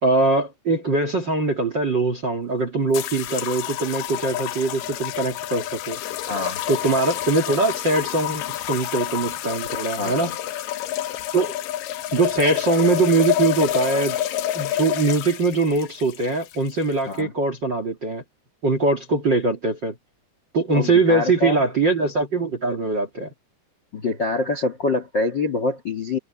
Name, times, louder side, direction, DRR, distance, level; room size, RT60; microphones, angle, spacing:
voice 1, 0.0-6.0 6.7-10.3 11.3-11.5 12.1-14.2 14.5-18.2 18.6-19.9 20.5-23.3, right 3 dB, 40° right, 1.8 m, -22 dB
sound 1, 2.9-17.2, left 12 dB, 75° left, 2.1 m, -28 dB
voice 2, 6.2-6.6 10.0-10.3 17.0-17.3 20.7-21.6 23.9-26.2, left 3 dB, 40° left, 1.6 m, -25 dB
omnidirectional pair, 5.0 m